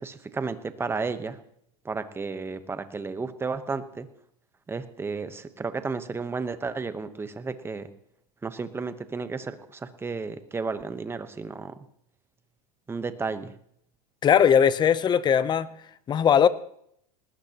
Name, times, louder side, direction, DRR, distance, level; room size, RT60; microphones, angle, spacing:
voice 1, 0.0-1.4 1.8-4.1 4.7-7.9 8.4-11.7 12.9-13.5, right 4 dB, 10° right, 11 dB, 1.0 m, -33 dB
voice 2, 14.2-15.7 16.1-16.5, left 8 dB, 20° left, 16 dB, 0.7 m, -19 dB
20.0 x 19.0 x 2.9 m, 0.70 s
supercardioid pair, 140°, 21 cm